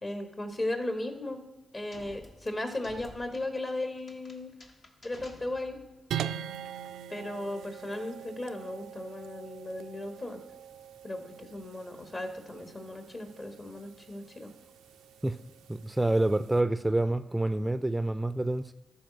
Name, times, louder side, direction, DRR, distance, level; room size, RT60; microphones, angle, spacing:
voice 1, 0.0-1.4 1.7-4.5 5.0-5.8 7.1-10.4 11.0-14.5, left 1 dB, 40° left, 1.9 m, -36 dB
sound 1, 1.9-6.0, left 2 dB, 60° left, 1.4 m, -53 dB
sound 2, 6.1-16.6, right 9 dB, 85° right, 0.3 m, -43 dB
voice 2, 15.7-18.7, right 1 dB, 15° right, 0.4 m, -27 dB
13.0 x 4.3 x 6.2 m
supercardioid pair, 45°, 0 cm